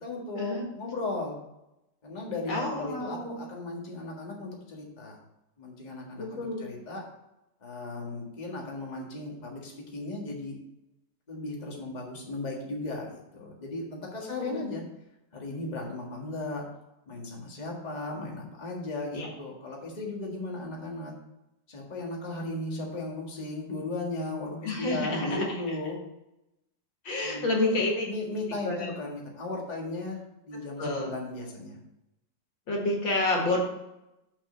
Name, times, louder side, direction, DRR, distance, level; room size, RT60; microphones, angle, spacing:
voice 1, 0.0-1.4 2.0-5.1 5.6-7.0 7.6-10.6 11.3-14.8 15.3-16.6 17.1-21.1 21.7-26.0 27.2-27.5 28.1-30.2 30.5-31.8, left 2 dB, 25° left, -2 dB, 1.7 m, -36 dB
voice 2, 2.5-3.4 6.2-6.7 14.2-14.7 19.1-19.3 24.6-25.6 27.0-28.0 28.6-28.9 30.8-31.1 32.7-33.6, left 2 dB, 80° left, 0 dB, 2.5 m, -29 dB
6.3 x 5.9 x 6.6 m, 0.90 s
omnidirectional pair, 2.1 m